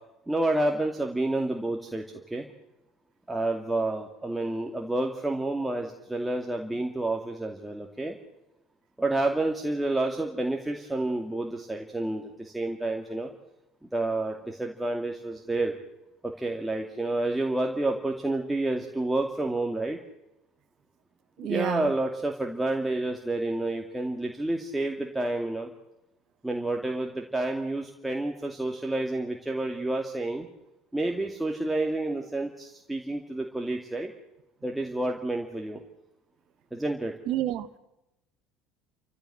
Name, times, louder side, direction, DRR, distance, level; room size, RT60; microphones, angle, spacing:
voice 1, 0.3-2.0 2.3-2.5 3.3-8.1 9.0-13.3 13.9-15.7 16.4-20.0 21.4-25.7 26.4-30.5 30.9-34.1 34.6-35.8 36.7-37.1, right 2 dB, 5° right, 1 dB, 2.5 m, -29 dB
voice 2, 21.4-21.9 37.3-37.8, right 13 dB, 55° right, 14 dB, 1.3 m, -29 dB
30.0 x 15.5 x 7.8 m, 0.92 s
figure-of-eight pair, 65°, 0 cm